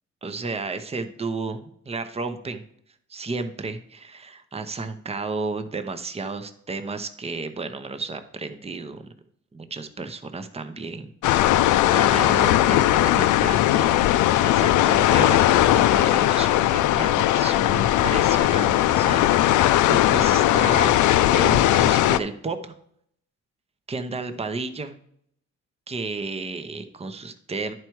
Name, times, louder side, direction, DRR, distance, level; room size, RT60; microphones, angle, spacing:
voice 1, 0.2-2.6 3.1-9.0 9.5-11.1 11.5-14.1 14.4-22.7 23.9-24.9 25.9-27.7, right 3 dB, 20° right, 9 dB, 0.8 m, -32 dB
sound 1, 11.2-22.2, left 14 dB, 80° left, 0.5 m, -19 dB
10.5 x 4.6 x 4.6 m, 0.68 s
cardioid pair, 90°, 30 cm